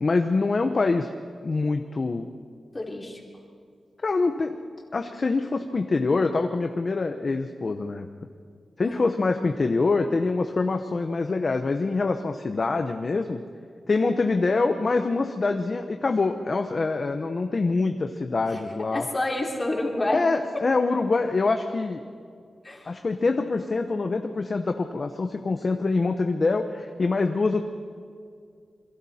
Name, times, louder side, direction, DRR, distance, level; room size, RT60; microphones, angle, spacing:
voice 1, 0.0-1.1 1.4-2.3 4.0-4.6 4.9-8.1 8.8-13.4 13.9-19.1 20.1-22.0 22.9-27.6, left 3 dB, 40° left, 6 dB, 0.8 m, -25 dB
voice 2, 2.7-3.2 8.8-9.0 18.5-18.6 18.9-20.2 22.6-22.9, left 2 dB, 20° left, -1 dB, 3.2 m, -28 dB
27.5 x 22.5 x 4.3 m, 2.2 s
wide cardioid pair, 145°, 0 cm